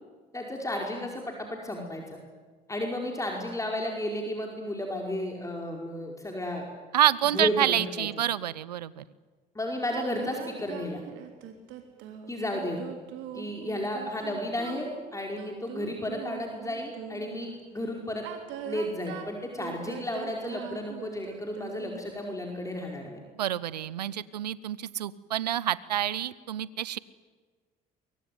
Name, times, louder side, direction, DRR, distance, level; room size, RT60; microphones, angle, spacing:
voice 1, 0.3-2.2 2.7-6.7 7.2-8.1 9.5-11.0 12.3-12.8 13.3-18.3 18.6-23.2, left 1 dB, 15° left, 1 dB, 5.0 m, -33 dB
voice 2, 6.9-9.0 23.4-27.0, right 11 dB, 90° right, 20 dB, 0.7 m, -28 dB
sound 1, 9.9-17.4 18.1-22.1, right 10 dB, 70° right, 3.5 m, -42 dB
23.0 x 23.0 x 9.5 m, 1.4 s
hypercardioid pair, 55°, 20 cm